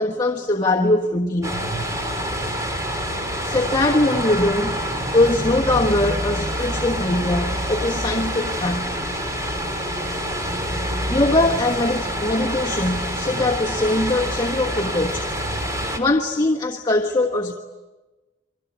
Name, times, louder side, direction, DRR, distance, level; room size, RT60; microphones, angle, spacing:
voice 1, 0.0-1.6 3.4-4.8 5.1-8.9 11.1-15.3 16.0-17.6, left 2 dB, 25° left, 1 dB, 1.3 m, -21 dB
sound 1, 1.4-16.0, equal, 20° right, 3.5 m, -26 dB
29.0 x 24.0 x 8.3 m, 1.2 s
head